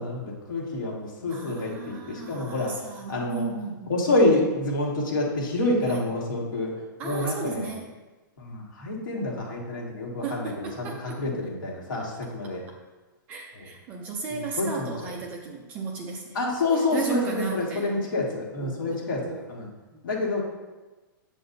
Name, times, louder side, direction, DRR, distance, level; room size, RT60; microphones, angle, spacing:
voice 1, 0.0-3.5 3.9-6.7 7.0-7.7 8.4-12.6 13.5-13.7 14.3-15.1 16.3-19.7 20.0-20.4, left 2 dB, 65° left, -3 dB, 2.0 m, -28 dB
voice 2, 1.3-3.9 5.9-6.0 7.0-7.9 10.2-11.2 11.9-12.0 13.3-16.4 16.9-17.9 18.6-19.0 19.2-19.4 19.9-20.0, right 5 dB, 15° right, 1 dB, 0.4 m, -35 dB
7.9 x 7.5 x 2.7 m, 1.2 s
hypercardioid pair, 180°, 11 cm